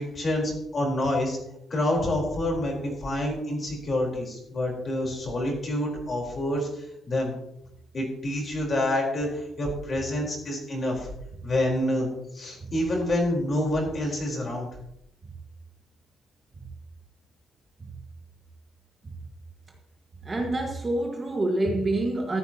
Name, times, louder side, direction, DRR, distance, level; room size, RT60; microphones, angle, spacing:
voice 1, 0.0-1.4 1.7-7.3 7.9-11.1 11.4-12.1 12.3-14.7, left 1 dB, 30° left, -1 dB, 4.0 m, -27 dB
voice 2, 20.2-22.4, right 2 dB, 20° right, 1 dB, 1.5 m, -27 dB
14.0 x 13.0 x 2.9 m, 0.81 s
cardioid pair, 170°, 0 cm